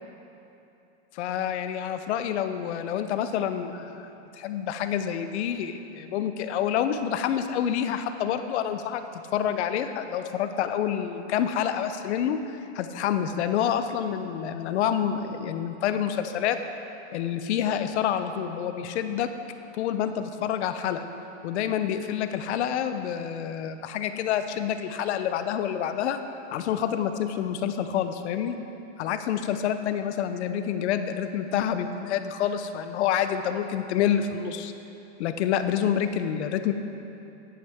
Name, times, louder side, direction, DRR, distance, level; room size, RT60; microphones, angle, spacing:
voice 1, 1.1-4.0 4.4-9.0 9.3-12.4 12.7-16.6 17.1-19.3 19.7-21.0 21.4-26.2 26.5-28.6 29.0-34.7 35.2-36.7, left 9 dB, 70° left, 9 dB, 0.7 m, -27 dB
15.0 x 8.5 x 3.5 m, 2.9 s
supercardioid pair, 150°, 36 cm